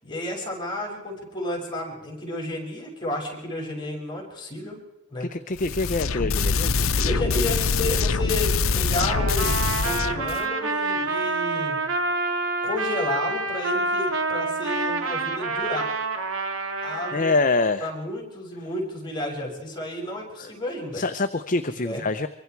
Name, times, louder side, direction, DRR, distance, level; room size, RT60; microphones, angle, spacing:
voice 1, 0.0-4.8 5.1-5.3 7.0-11.8 12.6-15.9 16.8-17.3 17.8-21.0 21.7-22.0, left 1 dB, 25° left, -1 dB, 6.6 m, -31 dB
voice 2, 5.2-7.1 9.0-9.2 17.1-17.9 20.4-20.5 20.9-22.3, left 3 dB, 40° left, 9 dB, 0.8 m, -26 dB
sound 1, 5.6-10.4, left 4 dB, 85° left, 0.8 m, -24 dB
Trumpet, 9.0-17.4, right 3 dB, 80° right, 2.5 m, -27 dB
25.0 x 24.0 x 4.7 m, 0.87 s
head